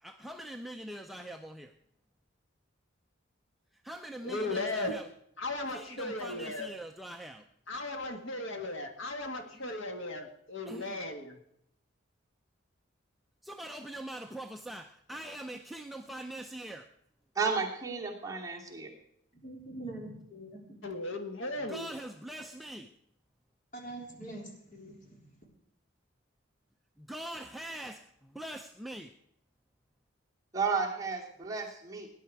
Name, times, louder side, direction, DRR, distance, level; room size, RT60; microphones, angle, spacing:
voice 1, 0.0-1.7 3.7-5.1 5.7-7.4 9.5-9.6 10.6-11.0 13.4-16.9 21.6-22.9 27.0-29.1, right 1 dB, ahead, 3 dB, 0.5 m, -43 dB
voice 2, 4.2-5.0 5.4-6.7 7.7-11.3 20.8-21.9, left 2 dB, 70° left, 5 dB, 1.8 m, -36 dB
voice 3, 17.3-18.9 30.5-32.1, right 5 dB, 15° right, -2 dB, 2.6 m, -32 dB
voice 4, 19.3-20.8 23.7-25.4, right 1 dB, 40° left, 0 dB, 3.6 m, -44 dB
18.0 x 10.5 x 4.7 m, 0.74 s
head